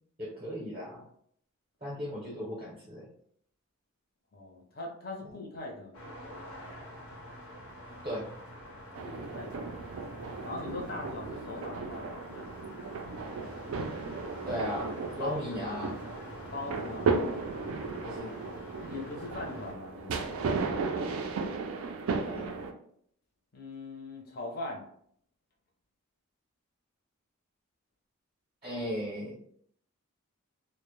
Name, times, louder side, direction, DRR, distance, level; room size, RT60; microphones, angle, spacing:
voice 1, 0.2-1.0 1.8-3.1 5.2-5.3 8.0-8.3 14.5-16.0 18.0-18.4 22.2-22.5 28.6-29.4, equal, 30° right, -5 dB, 0.6 m, -37 dB
voice 2, 4.3-6.0 9.0-9.7 10.4-12.5 15.2-15.8 16.5-17.1 18.9-20.3 23.5-24.8, left 2 dB, 45° left, 0 dB, 0.5 m, -40 dB
sound 1, 5.9-19.7, equal, 80° left, 0.7 m, -47 dB
sound 2, 8.9-22.7, right 4 dB, 75° right, 0.3 m, -35 dB
2.1 x 2.1 x 3.0 m, 0.65 s
head